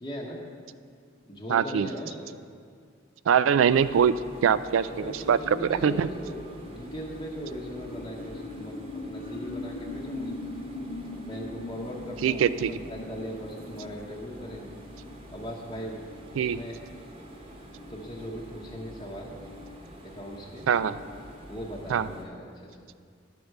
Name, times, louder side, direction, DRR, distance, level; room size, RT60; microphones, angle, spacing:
voice 1, 0.0-0.4 1.3-2.4 4.9-10.4 11.3-14.8 15.3-16.1 16.3-16.8 17.9-19.4 20.0-20.7 21.5-22.9, equal, 20° left, -2 dB, 0.9 m, -39 dB
voice 2, 1.5-1.9 3.3-4.1 4.4-6.1 12.2-12.7 16.4-16.6 20.7-21.0 21.9-22.1, right 7 dB, 80° right, 14 dB, 0.3 m, -23 dB
sound 1, 3.7-22.2, equal, 30° right, 1.0 m, -46 dB
sound 2, 6.1-16.5, left 2 dB, 55° left, 0.5 m, -42 dB
11.0 x 4.6 x 6.5 m, 2.1 s
head